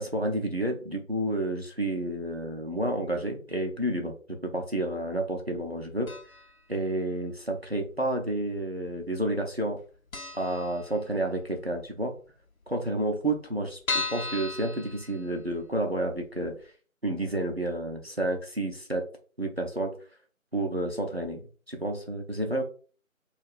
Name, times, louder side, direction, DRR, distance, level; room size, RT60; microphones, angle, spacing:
voice 1, 0.0-4.1 4.4-6.1 6.7-9.8 10.3-12.1 12.7-16.5 17.0-19.0 19.4-19.9 20.5-21.4 21.7-22.6, right 1 dB, 50° right, 3 dB, 0.5 m, -30 dB
sound 1, 6.1-6.6 6.9-7.0 7.9-8.6 8.9-9.0 9.3-9.4 9.8-9.9 10.1-11.4 11.8-11.9 12.2-12.3 12.5-12.6 13.1-15.7 16.2-16.3 16.6-16.7, left 3 dB, 75° left, 0.8 m, -36 dB
3.4 x 2.3 x 2.4 m, 0.39 s
figure-of-eight pair, 170°, 42 cm